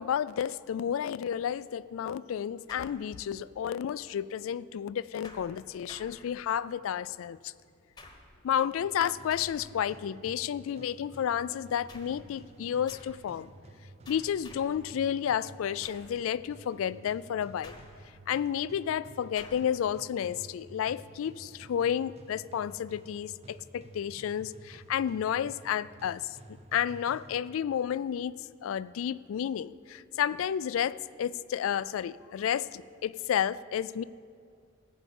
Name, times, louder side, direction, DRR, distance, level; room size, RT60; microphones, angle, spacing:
voice 1, 0.0-7.5 8.4-13.5 14.1-17.8 18.3-26.4 26.7-34.0, left 9 dB, 75° left, 19 dB, 0.3 m, -31 dB
sound 1, 2.7-3.5 5.2-6.8 8.0-8.5 9.3-9.9 11.9-12.3 12.9-13.3 14.0-14.9 15.8-16.2 17.6-18.3 19.4-19.8, left 2 dB, 20° left, 1.0 m, -51 dB
sound 2, 8.8-27.8, right 2 dB, 30° right, 0.6 m, -52 dB
15.5 x 5.5 x 8.2 m, 2.3 s
head